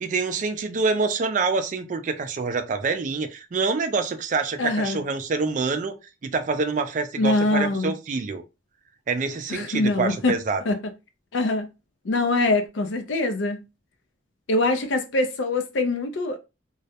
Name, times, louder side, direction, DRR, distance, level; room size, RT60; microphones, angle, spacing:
voice 1, 0.0-5.9 6.2-8.4 9.1-10.6, right 4 dB, 40° right, 0.3 m, -26 dB
voice 2, 4.6-5.0 7.2-7.9 9.5-10.3 10.7-10.8 11.3-11.7 12.0-13.6 14.5-16.4, left 2 dB, 85° left, 0.5 m, -23 dB
2.3 x 2.0 x 2.8 m
head